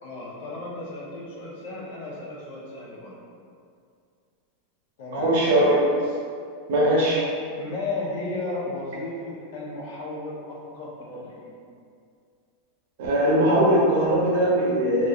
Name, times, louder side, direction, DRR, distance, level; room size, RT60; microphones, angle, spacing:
voice 1, 0.0-3.2 5.0-5.4 7.6-11.6, left 2 dB, 70° left, -5 dB, 0.8 m, -34 dB
voice 2, 5.1-5.7 6.7-7.3 13.0-15.1, right 1 dB, 70° right, -4 dB, 0.8 m, -20 dB
3.0 x 2.5 x 2.4 m, 2.3 s
supercardioid pair, 155°, 0 cm